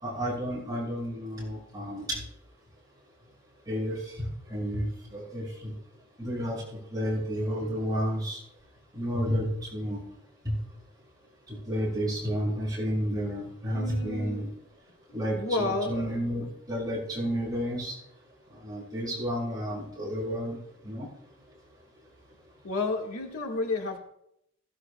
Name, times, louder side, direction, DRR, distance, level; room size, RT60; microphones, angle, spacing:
voice 1, 0.0-2.2 3.7-5.7 6.2-6.6 6.9-8.4 8.9-10.0 10.4-10.6 11.5-14.5 15.1-17.9 18.6-20.6 20.8-21.1, equal, 20° right, -6 dB, 6.2 m, -31 dB
voice 2, 13.7-14.5 15.3-16.3 22.6-24.0, left 3 dB, 90° left, 2 dB, 1.6 m, -31 dB
17.0 x 16.0 x 2.3 m, 0.76 s
head